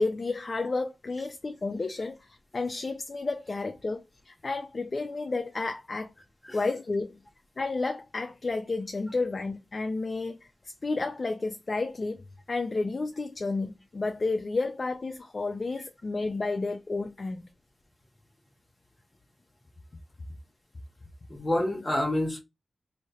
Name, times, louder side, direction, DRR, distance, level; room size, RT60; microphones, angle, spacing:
voice 1, 0.0-6.1 6.5-7.2 7.6-12.2 12.5-17.4, left 3 dB, 45° left, 0.5 m, -31 dB
voice 2, 21.3-22.4, left 1 dB, 25° left, 1.3 m, -28 dB
3.2 x 2.7 x 4.3 m
wide cardioid pair, 90°, 0 cm